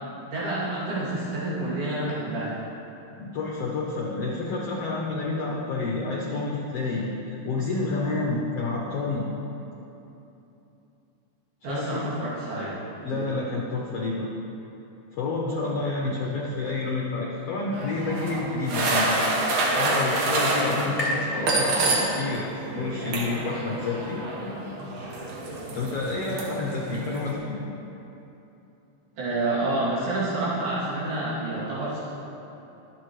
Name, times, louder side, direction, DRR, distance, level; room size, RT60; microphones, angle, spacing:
voice 1, 0.1-2.6 11.6-13.2 29.2-32.0, right 2 dB, 80° right, -10 dB, 4.7 m, -29 dB
voice 2, 3.2-9.2 11.7-12.0 13.0-14.3 15.1-19.3 19.8-24.6 25.7-27.6, left 3 dB, 75° left, -3 dB, 1.4 m, -29 dB
sound 1, 17.7-22.4 22.6-27.3, right 2 dB, 65° right, 2.7 m, -27 dB
sound 2, 18.6-22.4, left 1 dB, 30° left, 0.6 m, -37 dB
22.0 x 7.5 x 3.2 m, 3.0 s
omnidirectional pair, 4.2 m